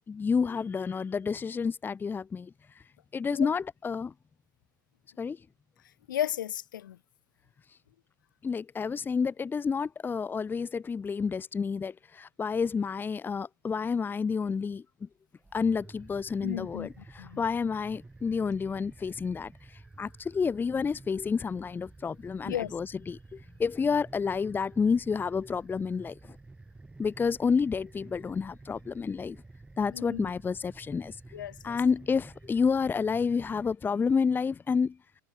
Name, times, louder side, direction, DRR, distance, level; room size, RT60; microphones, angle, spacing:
voice 1, 0.1-2.5 3.1-4.1 5.2-5.4 8.4-14.8 15.5-16.9 17.1-19.5 20.0-26.1 27.0-29.4 29.8-31.1 31.6-34.9, left 5 dB, 20° left, 1.1 m, -29 dB
voice 2, 6.1-7.0 16.4-17.4 22.4-22.7 29.9-30.3 31.3-31.8, left 11 dB, 75° left, 2.2 m, -35 dB
sound 1, 15.4-33.8, right 2 dB, 10° right, 3.8 m, -51 dB
hypercardioid pair, 90°, 11 cm